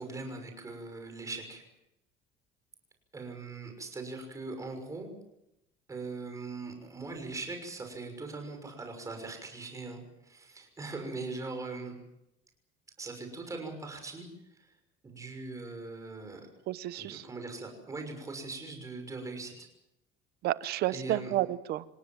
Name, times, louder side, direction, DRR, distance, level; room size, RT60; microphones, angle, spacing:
voice 1, 0.0-1.6 3.1-5.1 5.9-11.9 13.0-14.3 14.6-14.7 15.0-16.4 17.0-19.7 20.9-21.3, right 3 dB, 15° right, 4 dB, 6.2 m, -40 dB
voice 2, 16.7-17.3 20.4-21.8, right 15 dB, 55° right, 16 dB, 0.9 m, -31 dB
28.0 x 18.0 x 7.5 m, 0.85 s
cardioid pair, 150°, 19 cm